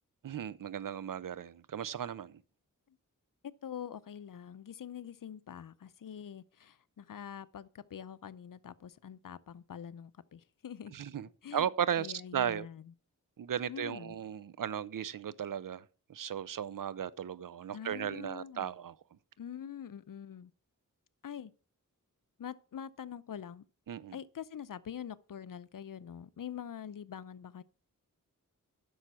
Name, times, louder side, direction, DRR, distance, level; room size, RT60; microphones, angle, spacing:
voice 1, 0.2-2.4 10.9-12.7 13.4-15.8 16.1-19.0 23.9-24.2, right 9 dB, 70° right, 0.6 m, -36 dB
voice 2, 3.6-10.9 11.4-11.7 12.0-12.9 13.7-14.2 17.7-18.7 19.4-20.5 21.2-21.5 22.4-23.6 24.1-27.6, left 9 dB, 70° left, 0.6 m, -45 dB
10.0 x 6.4 x 5.9 m
cardioid pair, 50°, 34 cm